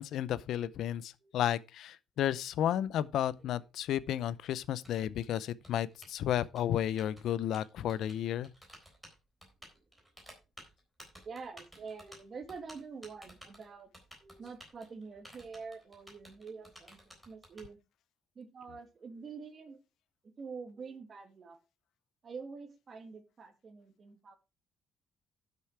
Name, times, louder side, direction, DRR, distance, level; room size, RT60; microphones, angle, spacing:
voice 1, 0.0-8.5, left 11 dB, 65° left, 0.6 m, -32 dB
Typing, 2.8-17.6, equal, ahead, 3.9 m, -56 dB
voice 2, 11.2-13.9 14.2-17.8 18.4-19.8 20.4-21.6 22.2-24.4, right 5 dB, 30° right, 2.0 m, -46 dB
11.5 x 6.8 x 4.6 m
cardioid pair, 160°, 0 cm